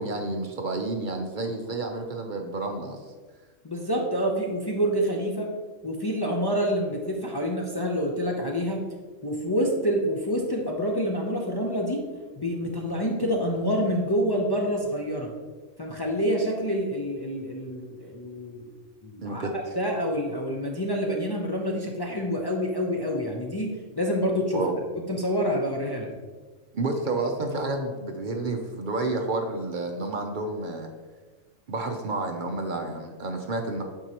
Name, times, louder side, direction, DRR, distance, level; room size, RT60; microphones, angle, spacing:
voice 1, 0.0-3.0 19.2-19.8 24.5-24.8 26.7-30.9 31.7-33.8, right 2 dB, 55° right, 3 dB, 0.6 m, -30 dB
voice 2, 3.6-5.5 5.8-8.8 9.2-12.0 12.4-15.3 15.8-18.7 19.0-23.7 24.0-24.6 25.1-26.1, equal, 35° left, -1 dB, 0.4 m, -27 dB
9.1 x 4.5 x 2.9 m, 1.4 s
omnidirectional pair, 1.4 m